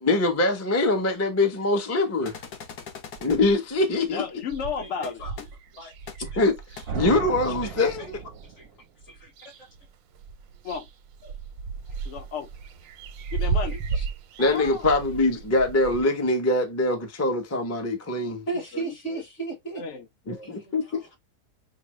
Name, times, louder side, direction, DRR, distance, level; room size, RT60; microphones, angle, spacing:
voice 1, 0.0-2.3 3.2-4.2 6.4-6.5 6.9-8.2 14.4-18.4 20.3-21.0, left 2 dB, 20° left, 0.3 m, -23 dB
sound 1, 2.2-3.4 5.0-5.1 5.4-5.5 6.1-6.2 6.8-6.9, left 6 dB, 65° left, 1.4 m, -40 dB
sound 2, 3.2-3.8 4.1-4.2 4.4-8.5 9.0-9.9 10.1-16.0, right 5 dB, 90° right, 1.3 m, -34 dB
voice 2, 3.9-5.5 10.6-10.9 12.0-12.5 13.3-13.8 14.4-14.9 18.5-19.2 19.8-20.6, left 6 dB, 80° left, 0.6 m, -34 dB
voice 3, 4.8-5.3 5.7-5.9 7.6-7.9 8.6-8.7 9.1-9.3 13.9-14.0 18.5-19.8 20.4-21.2, right 4 dB, 40° left, 1.8 m, -36 dB
sound 3, 6.9-8.8, right 6 dB, 55° right, 0.7 m, -35 dB
5.8 x 2.0 x 3.1 m
omnidirectional pair, 1.9 m